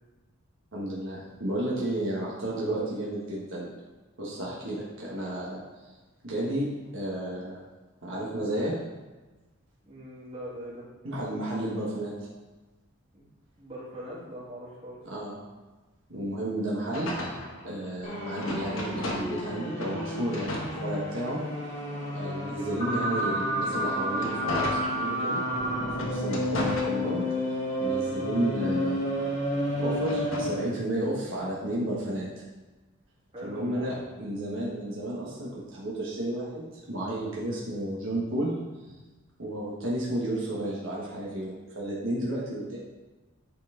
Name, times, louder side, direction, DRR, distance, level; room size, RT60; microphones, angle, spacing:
voice 1, 0.7-3.7 4.2-5.6 6.2-6.7 6.9-7.6 8.0-8.8 11.0-12.1 15.1-15.4 16.1-17.3 17.6-20.5 20.8-21.4 22.1-25.4 26.0-27.3 27.8-29.0 29.8-32.4 33.4-38.6 38.8-38.9 39.4-42.8, right 1 dB, 65° right, -6 dB, 1.3 m, -32 dB
voice 2, 4.4-4.7 9.8-10.8 13.1-13.3 13.6-15.0 33.3-33.9, equal, 30° right, -7 dB, 2.3 m, -41 dB
sound 1, 16.9-19.5 19.8-21.4 22.0-25.5 25.9-27.5 28.0-30.6, left 1 dB, 70° left, 1.2 m, -37 dB
sound 2, 18.0-30.7, equal, 35° left, 1.6 m, -30 dB
9.3 x 4.2 x 3.8 m, 1.2 s
head